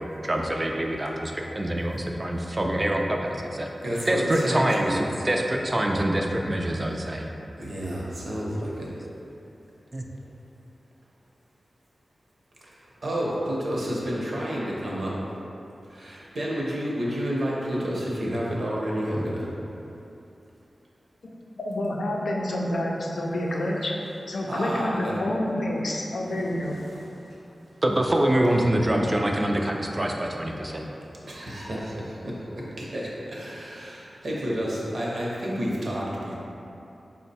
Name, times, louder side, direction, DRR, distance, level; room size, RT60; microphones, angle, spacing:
voice 1, 0.2-3.7 4.1-7.3 9.9-10.1 27.8-30.9, right 1 dB, 25° right, 1 dB, 0.4 m, -25 dB
voice 2, 3.8-5.0 7.6-8.9 13.0-15.1 15.9-19.4 24.5-25.3 26.2-26.4 26.8-27.1 31.3-36.3, equal, 65° right, -5 dB, 0.8 m, -30 dB
voice 3, 21.5-23.9 24.3-26.8, left 1 dB, 85° left, -2 dB, 0.5 m, -28 dB
4.6 x 2.1 x 4.1 m, 2.8 s
wide cardioid pair, 105°, 0 cm